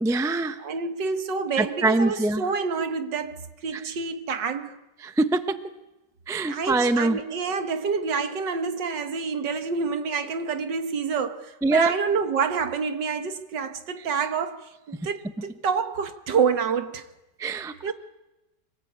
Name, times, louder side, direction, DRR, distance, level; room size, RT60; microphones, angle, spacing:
voice 1, 0.0-0.6 1.6-2.4 5.2-5.6 6.3-7.2 11.6-11.9 17.4-17.9, right 2 dB, 5° right, 0.4 m, -23 dB
voice 2, 0.6-4.8 6.5-17.1 17.8-17.9, right 5 dB, 80° right, 2.1 m, -28 dB
25.5 x 18.5 x 8.7 m
omnidirectional pair, 1.9 m